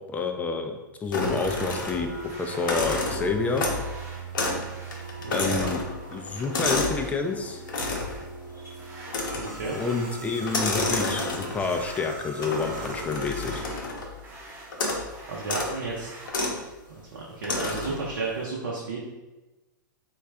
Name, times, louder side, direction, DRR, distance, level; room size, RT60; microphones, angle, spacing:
voice 1, 0.0-2.1 2.4-3.6 5.3-5.8 6.1-7.6 9.7-13.6, left 4 dB, 15° left, 4 dB, 0.4 m, -28 dB
sound 1, 1.0-16.3, right 1 dB, 20° right, 0.8 m, -46 dB
sound 2, 1.1-2.2 2.5-3.9 4.3-4.7 4.9-7.1 7.7-8.2 9.1-9.6 10.4-11.7 12.4-14.1 14.7-15.1 15.4-15.7 16.3-16.6 17.4-18.0, left 2 dB, 70° left, 0.7 m, -30 dB
sound 3, 1.4-13.6, right 2 dB, 50° right, 1.0 m, -40 dB
voice 2, 5.2-5.7 9.4-9.8 15.3-16.1 16.9-19.0, right 3 dB, 75° right, -5 dB, 0.7 m, -32 dB
3.3 x 2.4 x 3.3 m, 1.1 s
hypercardioid pair, 110°, 11 cm